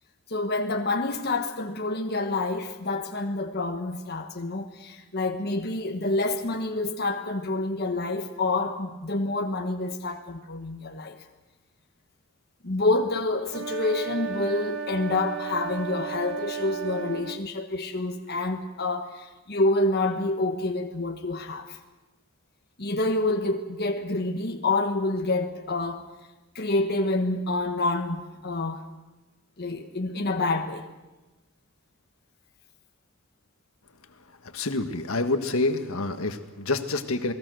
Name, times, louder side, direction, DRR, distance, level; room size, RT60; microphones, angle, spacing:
voice 1, 0.3-11.2 12.6-21.8 22.8-26.1 26.5-28.9 29.6-30.9, left 2 dB, 50° left, 1.4 m, -28 dB
sound 1, 13.5-17.4, right 7 dB, 65° right, 1.2 m, -34 dB
voice 2, 34.5-37.3, left 2 dB, 75° left, 1.7 m, -27 dB
28.5 x 20.0 x 6.4 m
head